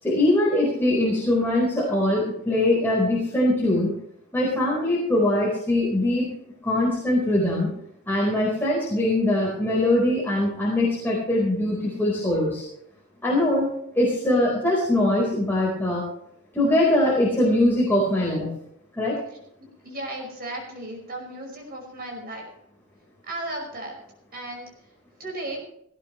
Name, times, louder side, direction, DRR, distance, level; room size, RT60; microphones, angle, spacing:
voice 1, 0.0-3.9 4.3-6.3 6.6-7.7 8.1-12.6 13.2-13.7 13.9-16.0 16.5-18.5 19.0-19.2, left 1 dB, 10° left, -5 dB, 4.6 m, -22 dB
voice 2, 19.3-22.5 23.3-24.0 24.3-24.6 25.2-25.6, right 1 dB, 45° right, 0 dB, 5.6 m, -35 dB
18.5 x 17.5 x 3.3 m, 0.73 s
head